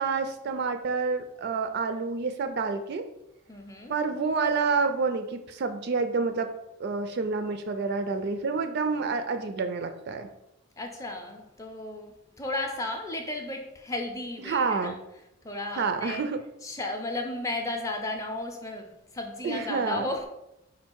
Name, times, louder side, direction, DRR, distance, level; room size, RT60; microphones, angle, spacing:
voice 1, 0.0-3.0 3.9-6.5 6.8-10.3 14.4-15.0 15.8-16.4 19.4-20.1, right 4 dB, 50° right, 8 dB, 0.3 m, -28 dB
voice 2, 3.5-4.0 10.8-15.0 15.4-16.3 16.6-20.2, left 2 dB, 15° left, 3 dB, 0.5 m, -34 dB
4.5 x 2.4 x 4.5 m, 0.87 s
head